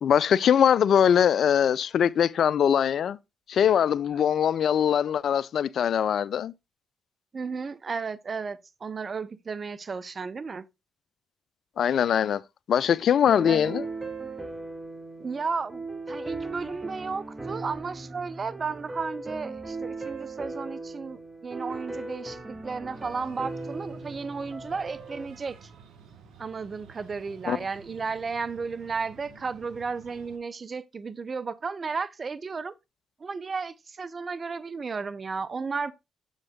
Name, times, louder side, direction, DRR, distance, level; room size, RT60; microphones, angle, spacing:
voice 1, 0.0-3.2 3.5-6.5 11.8-12.4 12.7-13.8 27.5-27.6, left 8 dB, 65° left, 0.3 m, -22 dB
voice 2, 7.3-10.6 13.5-13.7 15.2-25.7 26.4-32.7 33.2-35.9, right 5 dB, 40° right, 0.6 m, -34 dB
sound 1, 13.3-25.3, right 3 dB, 20° right, 1.7 m, -38 dB
Breathing, 22.9-30.4, right 6 dB, 70° right, 1.1 m, -52 dB
7.3 x 5.2 x 3.6 m
hypercardioid pair, 50°, 0 cm